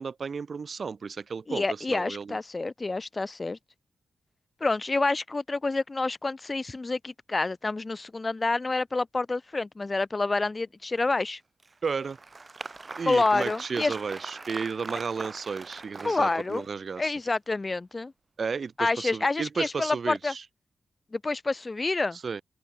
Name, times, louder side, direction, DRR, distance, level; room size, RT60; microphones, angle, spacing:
voice 1, 0.0-2.4 11.8-12.2 13.0-17.1 18.4-20.4 22.2-22.4, right 5 dB, 55° right, 0.4 m, -33 dB
voice 2, 1.5-3.6 4.6-11.4 13.1-14.0 16.0-16.6 17.0-18.1 18.8-20.3 21.1-22.2, left 3 dB, 30° left, 0.4 m, -28 dB
Applause, 11.6-16.9, right 3 dB, 35° right, 1.2 m, -41 dB
open air
wide cardioid pair, 105°, 0 cm